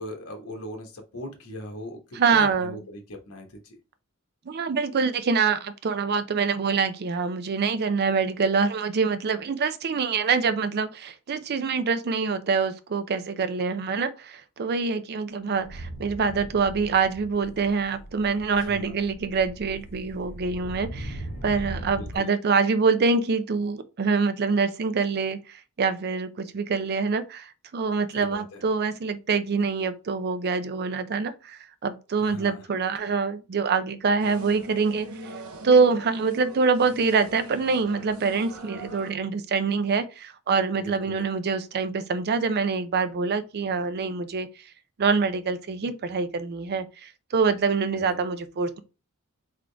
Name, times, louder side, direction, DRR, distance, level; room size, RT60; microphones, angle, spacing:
voice 1, 0.0-3.8 18.6-19.0 21.9-22.3 28.1-28.6 32.2-32.7 40.7-41.2 48.0-48.2, equal, 85° left, 1.1 m, -40 dB
voice 2, 2.1-2.8 4.5-35.1 35.6-44.5 45.0-48.8, right 5 dB, 50° right, 0.5 m, -25 dB
sound 1, 15.5-22.2, right 1 dB, 40° left, 1.7 m, -39 dB
sound 2, 34.2-39.1, right 1 dB, 75° right, 0.8 m, -41 dB
3.7 x 3.6 x 3.3 m
head